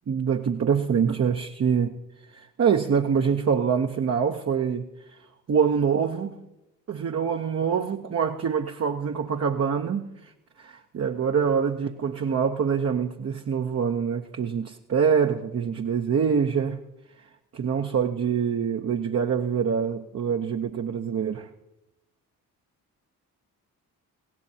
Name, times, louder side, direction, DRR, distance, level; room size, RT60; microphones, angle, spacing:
voice 1, 0.1-2.0 2.3-4.9 5.5-6.4 6.9-10.3 10.6-16.8 17.5-21.5, right 7 dB, 35° right, 0.8 m, -25 dB
20.0 x 16.5 x 2.8 m
hypercardioid pair, 45°, 42 cm